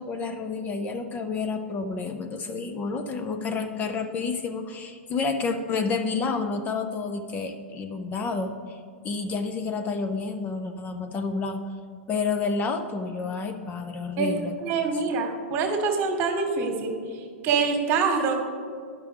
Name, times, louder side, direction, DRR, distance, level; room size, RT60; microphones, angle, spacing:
voice 1, 0.0-8.8 9.0-11.7 12.1-14.5, left 4 dB, 25° left, 6 dB, 0.5 m, -29 dB
voice 2, 14.6-17.0 17.4-18.4, right 5 dB, 40° right, 4 dB, 1.3 m, -25 dB
11.0 x 5.9 x 3.4 m, 2.1 s
hypercardioid pair, 115°, 7 cm